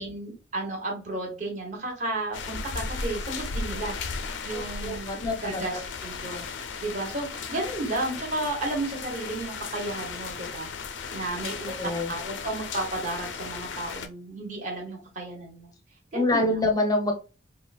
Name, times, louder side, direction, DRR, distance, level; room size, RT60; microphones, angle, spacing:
voice 1, 0.0-6.4 6.8-10.7 11.1-11.7 12.1-15.7 16.1-16.6, right 2 dB, 45° right, -1 dB, 1.0 m, -33 dB
sound 1, 2.3-14.1, left 5 dB, 90° left, 0.4 m, -36 dB
voice 2, 4.5-5.8 11.8-12.1 16.1-17.1, left 2 dB, 20° left, 3 dB, 0.5 m, -26 dB
3.8 x 2.0 x 2.3 m, 0.33 s
head